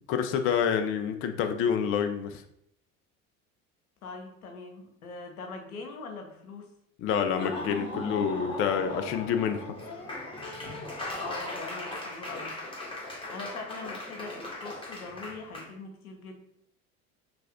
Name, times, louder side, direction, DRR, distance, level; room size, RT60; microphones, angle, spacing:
voice 1, 0.1-2.4 7.0-10.2, left 7 dB, 35° left, 7 dB, 0.4 m, -28 dB
voice 2, 4.0-6.7 11.1-12.5 13.3-16.4, left 3 dB, 85° left, 3 dB, 0.7 m, -42 dB
Laughter / Applause, 7.2-15.7, left 2 dB, 10° left, 1.1 m, -38 dB
3.1 x 2.4 x 3.6 m, 0.73 s
figure-of-eight pair, 65°, 42 cm